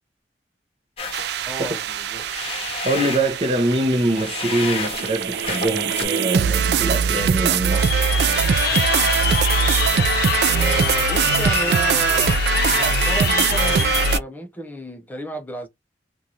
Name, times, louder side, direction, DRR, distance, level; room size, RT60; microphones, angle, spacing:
sound 1, 1.0-6.0, left 4 dB, 30° left, 0.9 m, -32 dB
sound 2, 1.1-14.2, right 6 dB, 60° right, 0.3 m, -22 dB
voice 1, 1.5-2.2 10.4-12.4 12.7-15.7, right 1 dB, 10° left, 0.4 m, -33 dB
voice 2, 2.8-8.1, right 1 dB, 30° right, 0.7 m, -23 dB
Crowd, 7.7-14.2, left 6 dB, 55° left, 0.6 m, -24 dB
2.6 x 2.3 x 2.8 m
head